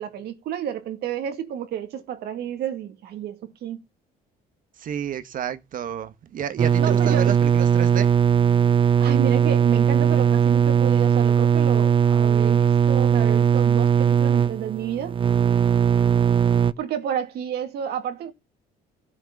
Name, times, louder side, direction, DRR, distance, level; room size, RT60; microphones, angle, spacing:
voice 1, 0.0-3.8 6.8-7.4 9.0-15.2 16.8-18.3, right 9 dB, 70° right, 2.3 m, -30 dB
voice 2, 4.8-8.1, right 9 dB, 55° right, 1.4 m, -31 dB
sound 1, 6.6-16.7, right 8 dB, 30° right, 0.7 m, -19 dB
15.0 x 6.8 x 7.2 m
cardioid pair, 110°, 17 cm